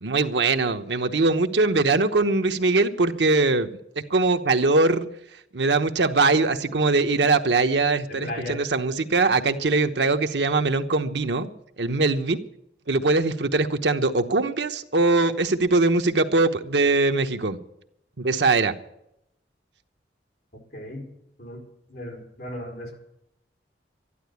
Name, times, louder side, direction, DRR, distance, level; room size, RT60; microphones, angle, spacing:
voice 1, 0.0-3.7 4.1-5.1 5.5-12.4 12.9-17.6 18.2-18.7, right 3 dB, 85° right, 7 dB, 1.0 m, -22 dB
voice 2, 8.1-8.6 20.7-21.1 21.4-21.6 21.9-22.9, left 1 dB, 55° left, 0 dB, 4.5 m, -35 dB
13.0 x 11.5 x 8.3 m, 0.81 s
head